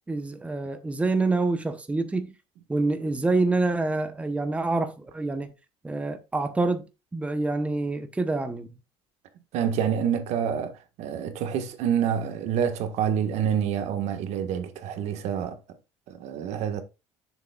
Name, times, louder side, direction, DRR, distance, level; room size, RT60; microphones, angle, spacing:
voice 1, 0.1-2.3 2.7-5.5 5.8-6.8 7.1-8.7, right 3 dB, 10° right, 0.9 m, -26 dB
voice 2, 9.5-15.6 16.1-16.8, right 8 dB, 75° right, 1.6 m, -27 dB
10.5 x 7.2 x 2.4 m
cardioid pair, 130°, 11 cm